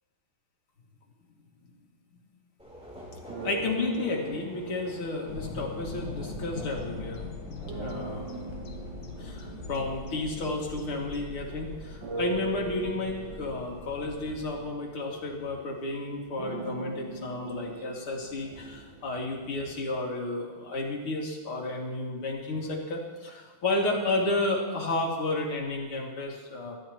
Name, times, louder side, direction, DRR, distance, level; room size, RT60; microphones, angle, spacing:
Subway metro underground, 2.6-19.8, equal, 5° right, 3.3 m, -50 dB
sound 1, 3.3-6.8 7.6-11.4 12.0-20.0, right 4 dB, 60° right, 1.8 m, -41 dB
voice 1, 3.4-7.2 7.8-8.3 9.2-26.8, left 2 dB, 85° left, -1 dB, 3.1 m, -32 dB
sound 2, 5.3-14.6, left 3 dB, 65° left, 1.9 m, -41 dB
26.5 x 12.0 x 2.9 m, 1.3 s
omnidirectional pair, 2.3 m